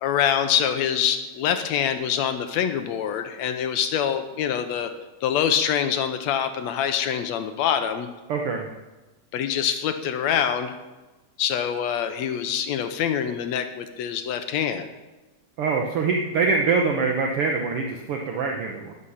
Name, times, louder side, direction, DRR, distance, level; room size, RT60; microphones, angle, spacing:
voice 1, 0.0-4.9 5.2-8.1 9.3-10.8 11.4-14.9, left 8 dB, 75° left, 8 dB, 1.7 m, -25 dB
voice 2, 8.3-8.7 15.6-18.9, right 4 dB, 75° right, 2 dB, 1.3 m, -24 dB
13.0 x 9.7 x 5.7 m, 1.1 s
omnidirectional pair, 3.7 m